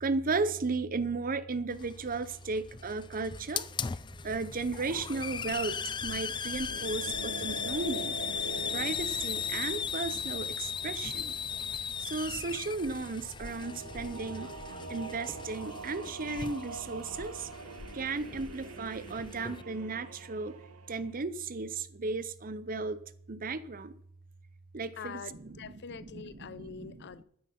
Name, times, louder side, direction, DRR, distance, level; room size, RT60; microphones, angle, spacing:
voice 1, 0.0-3.7 4.2-5.8 6.0-8.1 8.7-11.3 12.0-14.5 14.9-17.5 17.9-20.5 20.9-23.0 23.3-23.9 24.7-25.7 26.1-27.0, right 3 dB, 40° right, 16 dB, 0.7 m, -35 dB
Hiss, 1.7-19.6, left 6 dB, 20° left, 0.4 m, -38 dB
sound 1, 6.7-11.2 13.3-21.1, right 3 dB, 90° right, 1.5 m, -45 dB
voice 2, 25.0-27.2, left 6 dB, 50° left, 16 dB, 0.7 m, -44 dB
14.0 x 9.7 x 5.9 m, 0.68 s
head